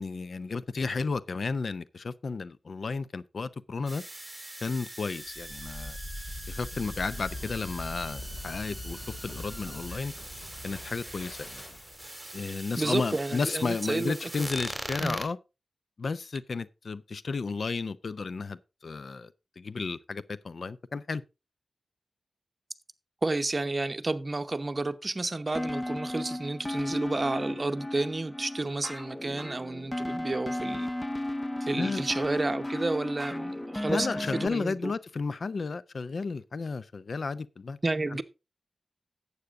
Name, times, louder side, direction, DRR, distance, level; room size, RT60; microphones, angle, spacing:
voice 1, 0.0-4.0 4.6-6.0 6.5-10.1 10.6-11.6 12.3-15.4 16.0-19.3 19.6-21.2 31.8-32.0 33.9-37.8 38.1-38.2, left 4 dB, 70° left, 0.5 m, -33 dB
sound 1, 3.9-15.3, right 1 dB, 10° right, 2.9 m, -42 dB
sound 2, 5.3-12.1, left 2 dB, 45° left, 2.6 m, -42 dB
voice 2, 12.8-14.5 15.0-15.2 23.2-30.9 31.6-34.9 37.8-38.2, right 2 dB, 40° right, 0.9 m, -31 dB
sound 3, 25.5-34.5, left 1 dB, 15° left, 0.5 m, -34 dB
11.5 x 8.3 x 3.6 m
cardioid pair, 55°, 0 cm